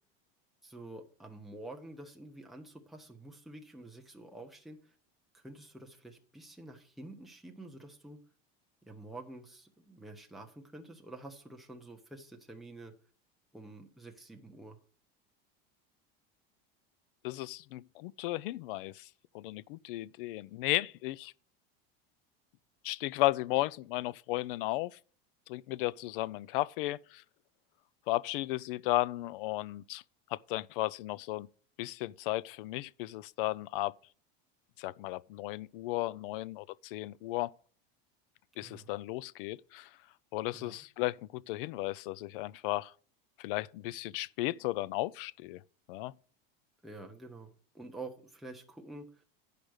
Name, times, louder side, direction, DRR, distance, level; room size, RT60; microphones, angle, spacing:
voice 1, 0.6-5.0 5.3-8.2 8.9-12.9 13.5-14.8 38.6-38.9 40.5-40.8 46.8-49.2, right 2 dB, ahead, 0.9 m, -48 dB
voice 2, 17.2-19.1 19.3-21.3 22.8-25.0 25.5-27.2 28.1-30.0 30.3-31.5 31.8-33.9 34.8-37.5 38.6-39.9 40.3-42.9 43.4-45.6 45.9-46.1, left 18 dB, 65° left, 0.5 m, -34 dB
11.5 x 5.1 x 6.3 m
supercardioid pair, 175°, 29 cm